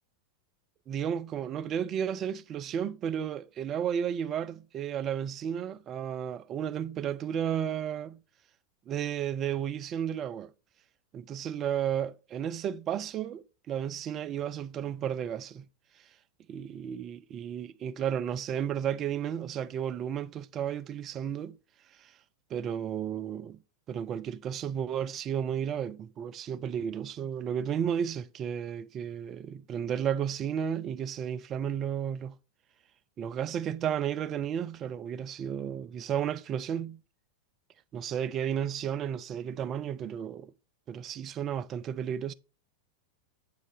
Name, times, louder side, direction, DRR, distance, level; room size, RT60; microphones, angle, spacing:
voice 1, 0.9-8.2 8.9-10.5 11.1-15.7 16.5-21.6 22.0-22.1 22.5-23.6 23.9-32.4 33.2-37.0 37.9-40.5 40.9-42.3, right 9 dB, 30° right, 0.3 m, -33 dB
7.5 x 3.8 x 3.3 m
figure-of-eight pair, 90°, 0 cm